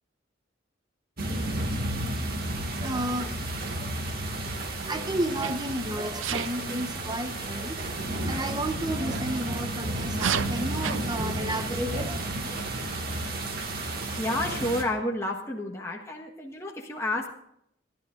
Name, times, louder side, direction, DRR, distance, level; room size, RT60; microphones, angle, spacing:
sound 1, 1.2-14.8, right 1 dB, 50° right, 2.1 m, -32 dB
voice 1, 2.8-3.5 3.7-3.9 4.3-8.0 8.2-12.3, right 1 dB, 20° right, 8 dB, 1.0 m, -32 dB
Sneeze, 5.4-5.7 6.2-6.5 9.1-9.2 10.1-11.0, right 7 dB, 75° right, 0.6 m, -30 dB
voice 2, 14.1-17.3, left 1 dB, 15° left, -1 dB, 1.4 m, -30 dB
27.0 x 11.5 x 2.6 m, 0.75 s
head